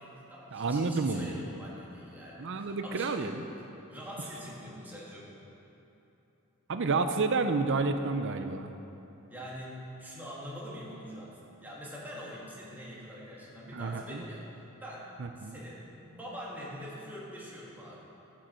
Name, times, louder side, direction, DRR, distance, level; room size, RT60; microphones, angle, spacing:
voice 1, 0.0-3.3 3.9-5.4 9.3-18.0, equal, 10° right, -6 dB, 1.8 m, -44 dB
voice 2, 0.5-1.3 2.4-3.4 6.7-8.7 13.7-14.2 15.2-15.6, right 4 dB, 55° right, 8 dB, 0.6 m, -30 dB
12.5 x 7.5 x 4.4 m, 3.0 s
head